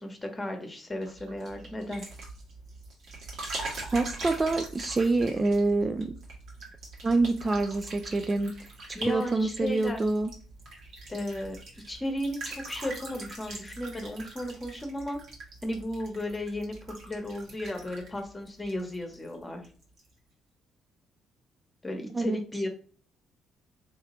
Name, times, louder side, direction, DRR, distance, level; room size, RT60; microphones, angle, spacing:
voice 1, 0.0-2.1 8.9-10.0 11.1-15.2 15.6-16.7 17.0-19.7 21.8-22.7, left 1 dB, 20° left, 1.1 m, -34 dB
sound 1, 1.0-19.3 19.6-20.1, right 2 dB, 55° right, 1.3 m, -43 dB
voice 2, 3.9-6.1 7.0-10.3 22.1-22.4, right 3 dB, 25° right, 0.3 m, -26 dB
4.7 x 2.8 x 3.0 m
figure-of-eight pair, 45°, 0 cm